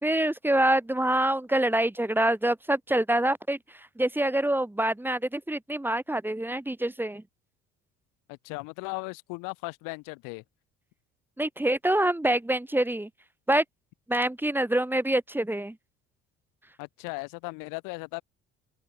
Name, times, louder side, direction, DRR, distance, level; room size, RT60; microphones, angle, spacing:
voice 1, 0.0-7.2 11.4-13.1 13.5-13.6 14.1-15.8, right 1 dB, 5° right, 1.5 m, -26 dB
voice 2, 8.3-10.4 16.8-18.2, left 30 dB, 70° left, 2.5 m, -37 dB
open air
hypercardioid pair, 60°, 33 cm